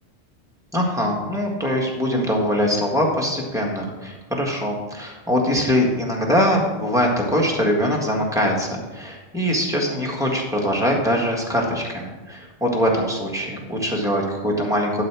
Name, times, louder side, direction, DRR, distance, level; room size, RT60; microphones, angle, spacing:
voice 1, 0.7-15.0, equal, 5° right, -2 dB, 1.6 m, -22 dB
12.0 x 4.1 x 6.1 m, 1.2 s
omnidirectional pair, 1.2 m